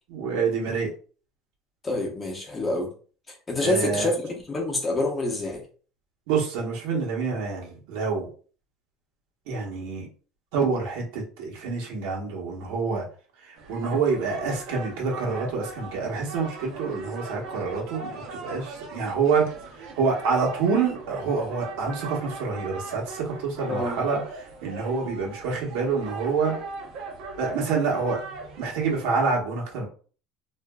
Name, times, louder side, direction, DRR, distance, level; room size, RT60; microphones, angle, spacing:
voice 1, 0.1-0.9 3.6-4.1 6.3-8.3 9.5-10.1 10.5-13.0 13.4-19.5 20.0-26.6 27.4-28.2 28.6-29.9, right 5 dB, 80° right, 1.0 m, -27 dB
voice 2, 1.8-2.9 3.5-5.6 23.7-24.0, left 2 dB, 20° left, 0.7 m, -27 dB
sound 1, 13.6-29.0, right 3 dB, 60° right, 0.6 m, -39 dB
2.8 x 2.5 x 2.2 m
cardioid pair, 135°, 0 cm